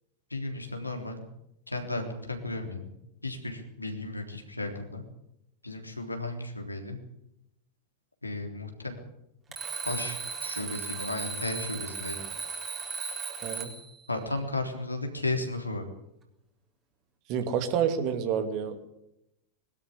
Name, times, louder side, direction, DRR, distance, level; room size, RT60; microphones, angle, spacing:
voice 1, 0.3-1.2 1.7-2.9 3.2-5.0 5.6-7.0 8.2-8.9 9.9-12.2 14.1-15.8, left 2 dB, 85° left, 3 dB, 3.6 m, -34 dB
Alarm, 9.5-13.9, right 5 dB, 20° right, 4.2 m, -36 dB
voice 2, 13.4-13.7 17.3-18.9, right 8 dB, 45° right, 7 dB, 2.7 m, -29 dB
21.5 x 12.5 x 9.8 m, 0.82 s
figure-of-eight pair, 90°, 0 cm